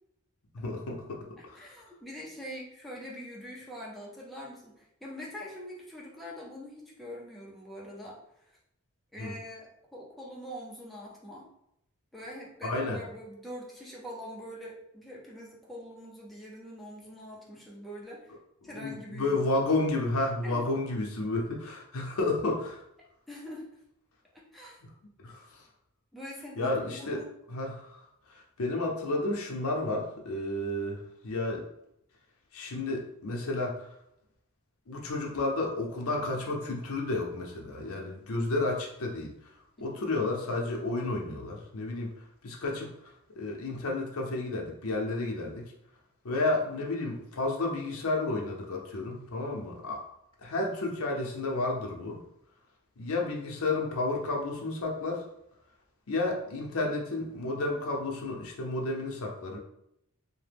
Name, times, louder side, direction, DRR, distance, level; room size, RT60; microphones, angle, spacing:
voice 1, 0.5-1.2 1.5-1.7 9.2-9.3 12.6-13.0 18.6-22.8 25.2-25.6 26.6-27.2 27.5-31.6 32.5-33.9 34.9-39.3 39.8-42.1 42.4-42.9 43.4-45.7 46.2-50.0 50.4-52.2 53.0-55.2 56.1-59.6, left 2 dB, 75° left, 0 dB, 0.6 m, -31 dB
voice 2, 1.4-8.2 9.1-11.5 12.1-18.3 18.6-19.4 20.4-20.6 23.3-23.7 24.3-24.8 26.1-27.2 39.9-40.0, equal, ahead, -5 dB, 0.5 m, -44 dB
2.8 x 2.1 x 3.3 m, 0.78 s
head